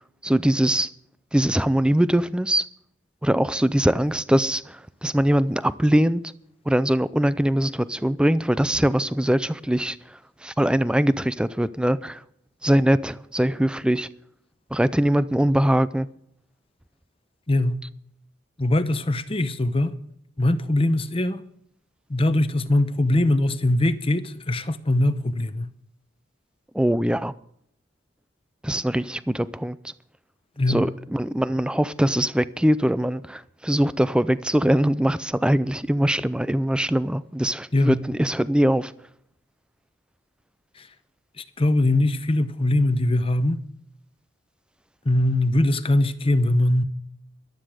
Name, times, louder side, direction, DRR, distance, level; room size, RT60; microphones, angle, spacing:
voice 1, 0.2-0.9 1.3-2.7 3.2-6.2 6.7-12.2 12.6-14.1 14.7-16.1 26.7-27.3 28.6-29.9 30.7-38.9, right 1 dB, 5° right, 0.4 m, -22 dB
voice 2, 17.5-17.8 18.6-19.9 20.4-21.4 22.1-25.7 30.6-30.8 37.7-38.0 40.8-40.9 41.4-43.6 45.0-46.8, left 1 dB, 25° left, 0.8 m, -21 dB
14.0 x 12.0 x 5.0 m
head